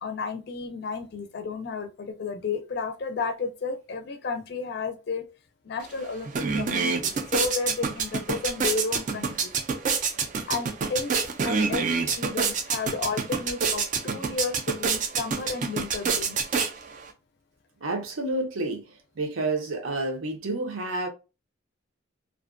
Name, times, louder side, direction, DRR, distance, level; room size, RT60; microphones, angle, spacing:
voice 1, 0.0-5.3 5.6-9.5 10.5-11.1 11.4-16.4, left 4 dB, 50° left, 0.4 m, -32 dB
sound 1, 5.8-5.9 6.2-17.1, right 5 dB, 40° right, 0.3 m, -27 dB
voice 2, 17.8-21.1, right 2 dB, 75° right, 0.7 m, -30 dB
2.4 x 2.1 x 2.4 m
head